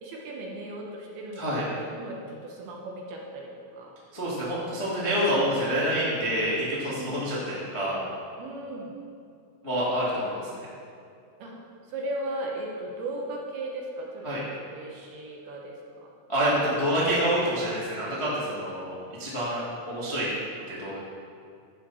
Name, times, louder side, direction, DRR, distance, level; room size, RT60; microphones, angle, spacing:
voice 1, 0.0-1.5 1.8-3.9 6.9-7.2 8.4-9.0 11.4-11.6 11.9-16.1, right 1 dB, 70° right, -1 dB, 2.7 m, -37 dB
voice 2, 4.1-8.0 9.6-10.5 14.2-14.4 16.3-20.3 20.7-21.0, equal, 20° left, -8 dB, 0.8 m, -27 dB
12.5 x 7.9 x 4.3 m, 2.4 s
omnidirectional pair, 5.1 m